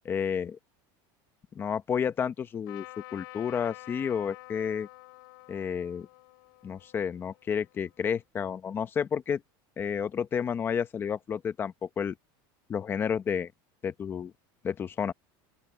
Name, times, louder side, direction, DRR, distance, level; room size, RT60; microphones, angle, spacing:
voice 1, 0.1-0.6 1.5-2.9 3.1-4.9 5.5-6.1 6.6-9.4 9.8-12.2 12.7-13.5 13.8-14.3 14.6-15.1, left 7 dB, 20° left, 0.8 m, -31 dB
Trumpet, 2.7-8.2, left 24 dB, 75° left, 4.7 m, -49 dB
open air
cardioid pair, 170°, 12 cm